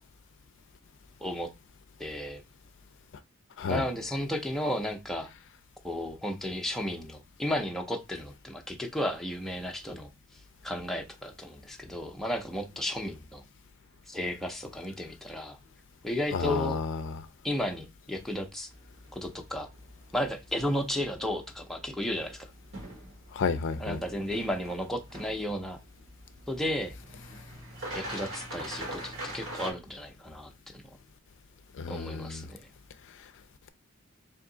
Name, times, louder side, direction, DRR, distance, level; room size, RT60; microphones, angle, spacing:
voice 1, 1.2-1.5 2.0-2.4 3.7-5.3 5.8-10.1 10.6-13.4 14.1-15.6 16.0-16.8 17.4-18.7 19.1-19.7 20.1-22.5 23.8-25.8 26.5-26.9 27.9-30.8 31.9-32.7, left 1 dB, ahead, 0.5 m, -33 dB
voice 2, 16.3-17.0 23.3-24.0 31.8-32.4, left 5 dB, 55° left, 0.4 m, -31 dB
sound 1, 18.7-29.7, right 1 dB, 60° right, 1.3 m, -44 dB
3.4 x 2.7 x 3.8 m
head